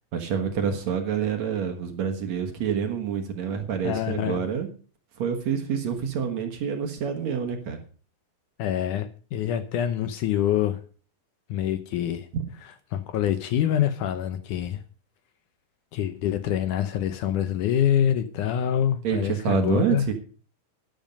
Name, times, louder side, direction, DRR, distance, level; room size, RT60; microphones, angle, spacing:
voice 1, 0.1-4.7 5.2-7.8 12.3-12.5 19.0-20.1, right 7 dB, 60° right, 6 dB, 2.3 m, -27 dB
voice 2, 3.8-4.4 8.6-10.8 11.5-12.3 12.9-14.8 15.9-20.1, left 10 dB, 75° left, 10 dB, 2.1 m, -25 dB
12.5 x 10.5 x 5.3 m, 0.41 s
omnidirectional pair, 4.1 m